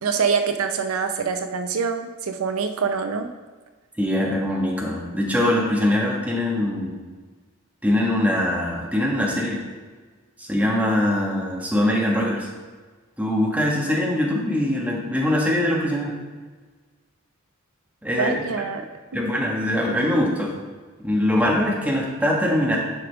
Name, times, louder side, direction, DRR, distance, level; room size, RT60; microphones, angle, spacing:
voice 1, 0.0-3.3 18.2-18.8, right 5 dB, 80° right, 7 dB, 0.5 m, -25 dB
voice 2, 4.0-7.0 7.8-9.6 10.4-12.5 13.2-16.1 18.0-18.4 19.1-20.5 21.0-22.8, left 1 dB, 5° right, -2 dB, 1.3 m, -22 dB
9.7 x 5.0 x 3.4 m, 1.4 s
head